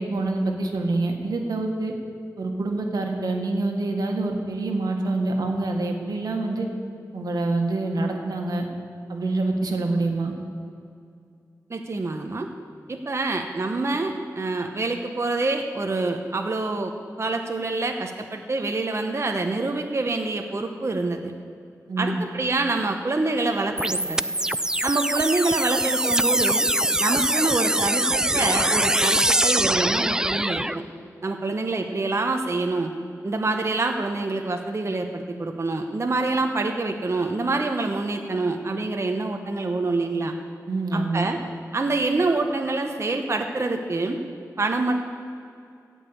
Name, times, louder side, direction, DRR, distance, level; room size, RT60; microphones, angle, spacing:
voice 1, 0.0-1.9 2.4-6.7 7.1-8.6 9.1-10.3 21.9-22.2 40.7-41.3, right 2 dB, 85° right, 2 dB, 1.5 m, -26 dB
voice 2, 11.7-12.5 12.9-16.9 17.2-21.3 22.0-24.2 24.8-26.7 27.0-30.8 31.2-32.9 33.2-40.3 40.9-41.4 41.7-44.2 44.6-45.0, right 3 dB, 45° right, 4 dB, 0.9 m, -26 dB
sound 1, 23.8-30.8, right 1 dB, 10° right, 0.4 m, -23 dB
15.5 x 5.5 x 8.3 m, 2.5 s
cardioid pair, 60°, 6 cm